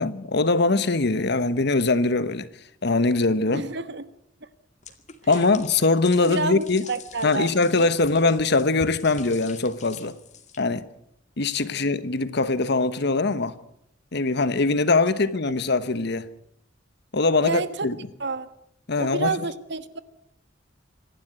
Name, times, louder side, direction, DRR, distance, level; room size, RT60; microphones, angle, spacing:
voice 1, 0.0-2.5 2.8-3.6 5.3-6.8 7.2-10.1 10.6-10.8 11.4-13.6 14.1-16.3 17.1-17.9 18.9-19.3, left 3 dB, 60° left, 1.1 m, -22 dB
voice 2, 3.5-4.0 5.3-5.5 6.2-7.9 8.2-8.3 11.7-11.9 15.5-15.6 17.4-17.9 18.2-18.5 19.0-20.0, right 3 dB, 65° right, 1.3 m, -30 dB
sound 1, 4.8-10.6, left 5 dB, 40° left, 2.2 m, -45 dB
26.0 x 11.5 x 9.1 m
head